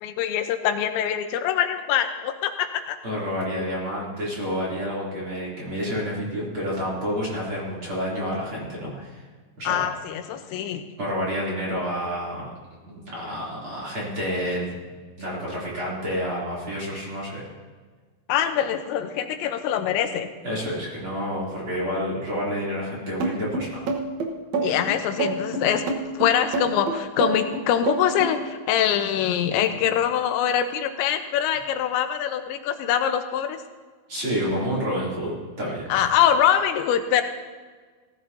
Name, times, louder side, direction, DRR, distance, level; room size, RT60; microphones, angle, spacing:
voice 1, 0.0-3.0 9.6-10.8 18.3-20.3 24.5-25.9 26.1-33.6 35.9-37.2, left 9 dB, 90° left, 7 dB, 3.1 m, -24 dB
voice 2, 3.0-9.2 9.6-9.9 11.0-12.5 12.8-17.5 20.4-23.8 34.1-36.0, equal, 30° right, -5 dB, 3.4 m, -29 dB
sound 1, 23.2-28.4, right 3 dB, 65° right, 1.8 m, -26 dB
18.5 x 14.5 x 2.8 m, 1.5 s
omnidirectional pair, 5.2 m